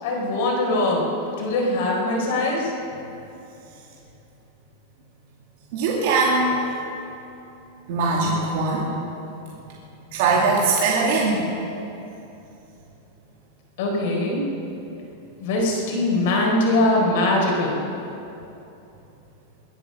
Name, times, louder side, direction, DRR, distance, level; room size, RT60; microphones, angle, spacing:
voice 1, 0.0-1.1 1.4-2.7 13.8-14.4 15.4-17.8, left 2 dB, 60° left, -2 dB, 4.4 m, -22 dB
voice 2, 5.7-6.6 7.9-8.9 10.1-11.4, right 3 dB, 55° right, -4 dB, 2.4 m, -21 dB
22.5 x 9.0 x 7.0 m, 2.9 s
supercardioid pair, 165°, 0 cm